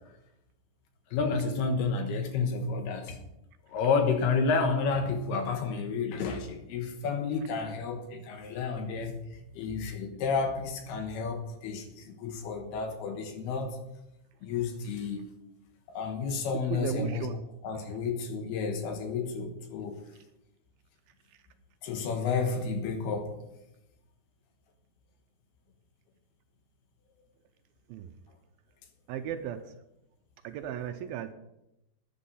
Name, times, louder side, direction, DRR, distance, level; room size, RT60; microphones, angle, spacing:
voice 1, 1.1-3.2 3.7-9.2 9.5-13.8 14.4-15.3 15.9-17.3 17.6-20.0 21.8-23.3, left 4 dB, 75° left, 5 dB, 3.1 m, -31 dB
voice 2, 16.5-17.4 17.7-18.0 20.1-20.2 21.3-21.4 27.9-28.1 29.1-29.7 30.4-31.3, right 9 dB, 80° right, 8 dB, 2.2 m, -36 dB
13.0 x 10.0 x 5.6 m, 0.88 s
omnidirectional pair, 4.9 m